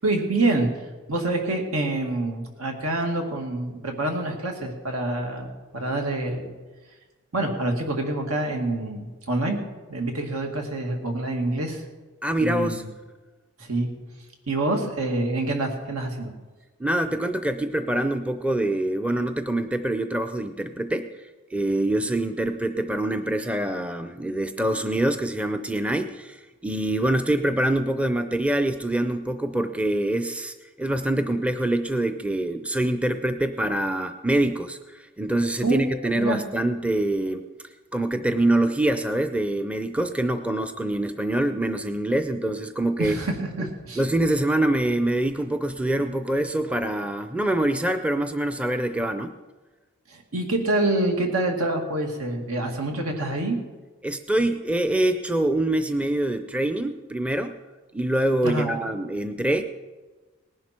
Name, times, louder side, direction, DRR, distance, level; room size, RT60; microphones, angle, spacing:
voice 1, 0.0-0.7 1.1-6.5 7.3-9.6 9.9-11.8 12.4-12.8 13.6-13.9 14.5-16.3 35.6-35.8 36.2-36.4 43.0-44.0 50.1-53.6 58.4-58.7, right 2 dB, 85° right, 3 dB, 2.2 m, -26 dB
voice 2, 12.2-12.8 16.8-37.5 37.9-43.2 43.6-43.7 44.0-49.4 54.0-57.6 57.9-59.6, right 1 dB, 5° right, 9 dB, 0.5 m, -25 dB
18.5 x 11.0 x 4.4 m, 1.3 s
head